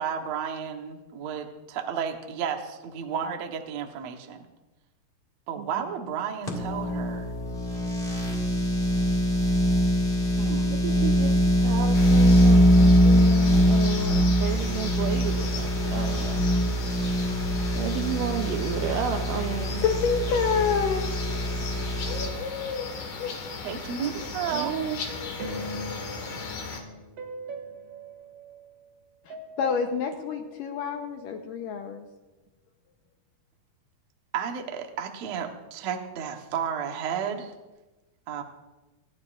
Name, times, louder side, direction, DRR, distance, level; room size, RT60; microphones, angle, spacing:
voice 1, 0.0-4.4 5.5-7.3 10.4-10.8 23.6-24.7 34.3-37.5 38.3-38.4, right 7 dB, 65° right, 3 dB, 1.7 m, -32 dB
voice 2, 5.6-5.9 10.7-11.3 11.6-16.4 17.8-19.8 24.5-25.0, right 9 dB, 85° right, 3 dB, 1.9 m, -32 dB
sound 1, 6.5-22.3, equal, 25° left, 1.3 m, -23 dB
sound 2, 11.9-26.8, left 4 dB, 55° left, 2.7 m, -36 dB
voice 3, 19.8-21.1 29.3-32.1, left 6 dB, 75° left, 3 dB, 2.1 m, -27 dB
sound 3, 25.1-28.9 29.3-31.3, equal, 45° right, 2.7 m, -41 dB
26.0 x 12.0 x 2.5 m, 1.1 s
omnidirectional pair, 4.7 m